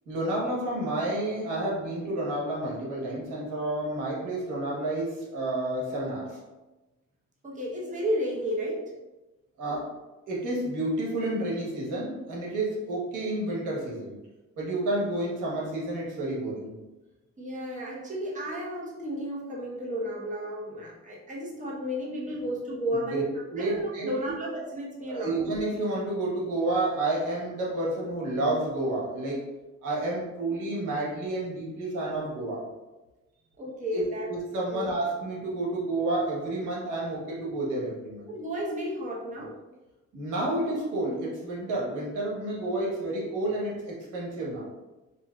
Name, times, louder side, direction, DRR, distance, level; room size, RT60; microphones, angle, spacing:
voice 1, 0.1-6.4 9.6-9.9 10.3-14.2 14.6-16.7 22.9-23.2 23.5-24.1 25.0-29.4 29.8-32.6 33.9-38.3 40.1-44.7, right 2 dB, 85° right, -4 dB, 1.2 m, -30 dB
voice 2, 7.4-8.9 17.4-25.4 33.6-34.3 34.7-34.8 38.3-39.6, equal, 25° right, -4 dB, 1.0 m, -33 dB
5.1 x 2.8 x 2.3 m, 1.1 s
cardioid pair, 90°, 30 cm